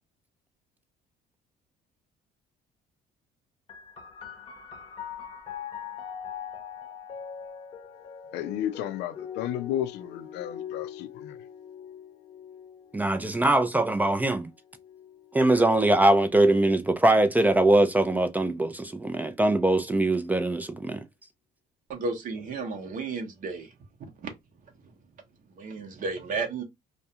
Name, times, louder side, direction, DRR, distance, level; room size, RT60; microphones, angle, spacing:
sound 1, 3.7-16.9 17.8-18.6, left 8 dB, 30° left, 0.7 m, -43 dB
voice 1, 8.3-11.4, left 11 dB, 85° left, 0.4 m, -33 dB
voice 2, 12.9-14.5 15.3-21.0, right 1 dB, 10° right, 0.3 m, -22 dB
voice 3, 21.9-23.7 25.6-26.6, right 4 dB, 50° right, 0.7 m, -32 dB
2.3 x 2.1 x 2.7 m
cardioid pair, 110°, 17 cm